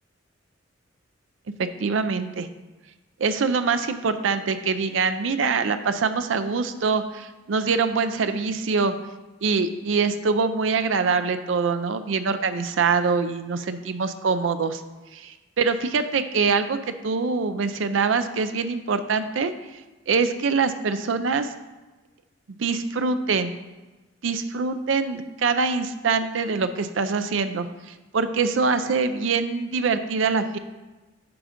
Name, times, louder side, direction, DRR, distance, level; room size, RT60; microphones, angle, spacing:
voice 1, 1.8-2.5 3.2-8.9 9.4-14.8 15.1-16.8 17.0-19.5 20.1-21.5 22.5-23.5 24.2-27.7 28.1-30.6, right 4 dB, 80° right, 10 dB, 0.5 m, -24 dB
9.4 x 3.8 x 5.0 m, 1.2 s
head